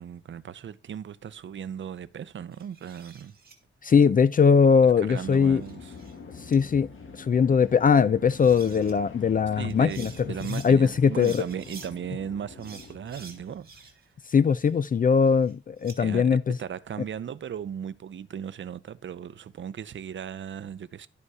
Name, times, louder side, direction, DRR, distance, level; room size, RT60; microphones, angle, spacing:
voice 1, 0.0-3.3 4.8-5.9 9.6-13.7 16.0-21.1, right 8 dB, 65° right, 0.6 m, -37 dB
sound 1, 2.5-3.6 5.1-6.2 6.5-6.6 8.0-8.1 8.3-8.9 9.7-10.7 11.2-11.9 12.6-14.1 14.5-16.0, right 5 dB, 50° right, 1.8 m, -49 dB
voice 2, 3.8-5.6 6.5-6.9 7.2-10.1 10.5-11.4 14.3-16.6, left 6 dB, 40° left, 0.4 m, -20 dB
sound 2, 4.9-13.9, left 5 dB, 75° left, 1.8 m, -45 dB
11.5 x 5.2 x 4.8 m
wide cardioid pair, 145°, 21 cm